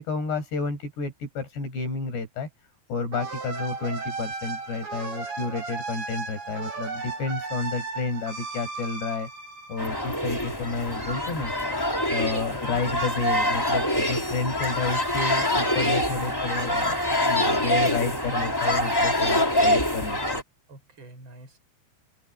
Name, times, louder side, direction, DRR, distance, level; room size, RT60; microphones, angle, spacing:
voice 1, 0.0-9.3 9.7-11.7 12.1-17.0 17.3-20.4, left 4 dB, 70° left, 9.3 m, -31 dB
sound 1, 3.1-10.6, right 4 dB, 90° right, 8.6 m, -35 dB
sound 2, 9.8-20.4, left 1 dB, 5° left, 3.4 m, -25 dB
voice 2, 12.5-12.8 16.1-17.5 20.7-21.6, right 2 dB, 25° right, 6.6 m, -46 dB
open air
omnidirectional pair, 5.0 m